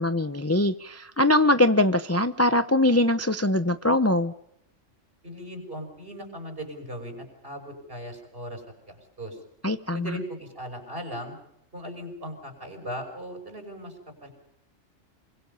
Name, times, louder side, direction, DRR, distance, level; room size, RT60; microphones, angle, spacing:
voice 1, 0.0-4.3 9.6-10.1, left 1 dB, 15° left, 10 dB, 0.8 m, -22 dB
voice 2, 5.2-9.4 9.9-11.4 11.7-14.3, equal, 50° right, 5 dB, 6.3 m, -38 dB
27.0 x 25.0 x 5.6 m, 0.77 s
omnidirectional pair, 1.2 m